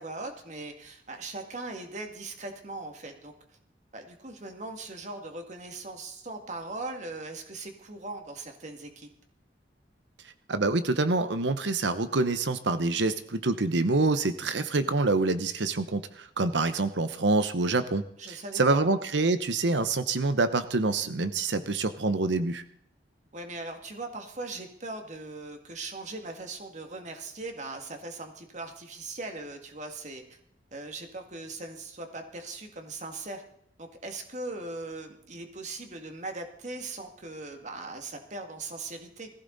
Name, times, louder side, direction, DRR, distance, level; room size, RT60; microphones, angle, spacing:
voice 1, 0.0-3.6 3.9-9.1 18.2-18.8 23.3-30.4 30.7-33.4 33.8-39.3, right 2 dB, 40° right, 4 dB, 2.3 m, -39 dB
voice 2, 10.5-22.6, right 3 dB, 80° right, 11 dB, 0.9 m, -26 dB
20.5 x 15.0 x 4.1 m, 0.71 s
head